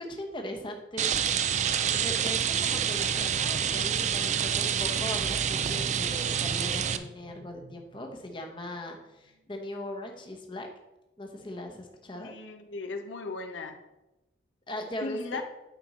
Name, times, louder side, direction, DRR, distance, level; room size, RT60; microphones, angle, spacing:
voice 1, 0.0-1.5 1.9-10.7 11.2-12.3 14.7-15.4, left 1 dB, 25° left, 2 dB, 0.9 m, -39 dB
Rain, 1.0-7.0, right 8 dB, 40° right, 0.4 m, -27 dB
sound 1, 2.8-9.4, right 1 dB, 80° right, 0.6 m, -48 dB
voice 2, 12.1-13.8 15.0-15.4, left 3 dB, 80° left, 6 dB, 0.7 m, -37 dB
9.1 x 5.2 x 4.2 m, 0.98 s
head